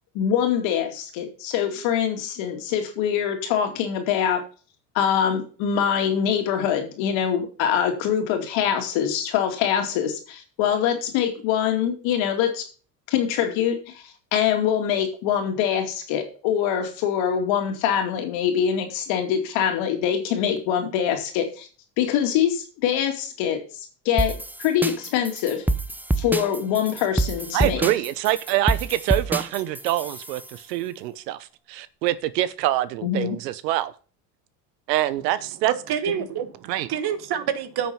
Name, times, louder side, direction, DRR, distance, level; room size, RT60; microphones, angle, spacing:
voice 1, 0.1-4.4 4.9-12.6 13.1-14.0 14.3-21.7 22.0-23.6 24.0-25.6 26.2-27.8 33.0-33.4, left 9 dB, 65° left, 5 dB, 2.5 m, -24 dB
sound 1, 24.2-30.5, right 2 dB, 5° right, 0.8 m, -27 dB
voice 2, 27.5-31.4 31.7-33.9 34.9-35.7 36.7-36.9, right 14 dB, 80° right, 16 dB, 0.9 m, -25 dB
voice 3, 35.6-37.9, right 9 dB, 50° right, 11 dB, 1.6 m, -27 dB
10.0 x 6.3 x 5.7 m, 0.39 s
hypercardioid pair, 75°, 49 cm